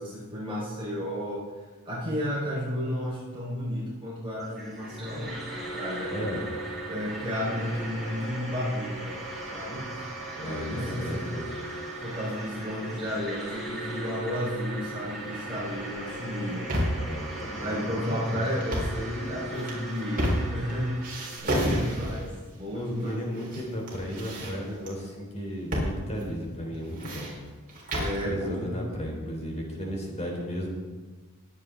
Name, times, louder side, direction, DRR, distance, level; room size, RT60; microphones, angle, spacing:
voice 1, 0.0-1.5 1.8-6.5 6.9-9.2 9.5-9.9 10.4-11.2 12.0-16.9 17.6-23.5 28.0-28.8, equal, 25° right, -7 dB, 4.8 m, -33 dB
sound 1, 4.4-21.4, right 2 dB, ahead, 5.2 m, -38 dB
voice 2, 6.1-6.4 10.3-11.5 17.0-18.5 22.7-27.3 28.2-30.7, equal, 30° left, -1 dB, 3.7 m, -35 dB
sound 2, 16.3-17.1 18.5-19.0 19.5-20.7 21.0-22.3 23.0-23.6 23.9-24.9 25.7-25.9 26.2-26.3 26.7-28.2, equal, 40° right, 4.1 m, -30 dB
21.5 x 8.8 x 3.9 m, 1.3 s
head